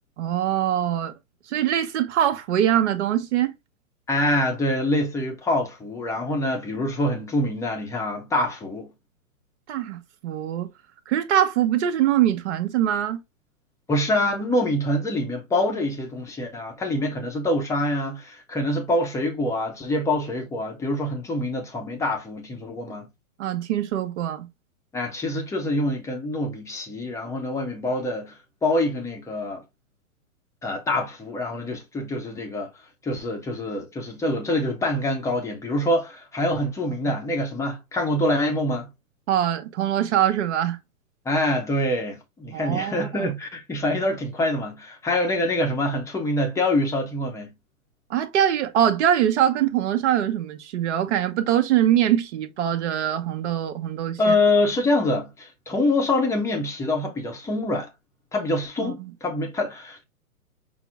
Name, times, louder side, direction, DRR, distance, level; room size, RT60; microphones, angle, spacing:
voice 1, 0.2-1.1 1.5-3.5 9.7-10.7 11.1-13.2 23.4-24.5 39.3-40.8 42.5-43.3 48.1-54.3 58.8-59.1, right 11 dB, 50° right, 1.0 m, -23 dB
voice 2, 4.1-8.9 13.9-23.1 24.9-29.6 30.6-32.7 33.0-38.9 41.2-47.5 54.2-57.9 58.3-60.0, left 1 dB, 5° left, 0.7 m, -25 dB
6.0 x 2.0 x 3.5 m
hypercardioid pair, 130°, 42 cm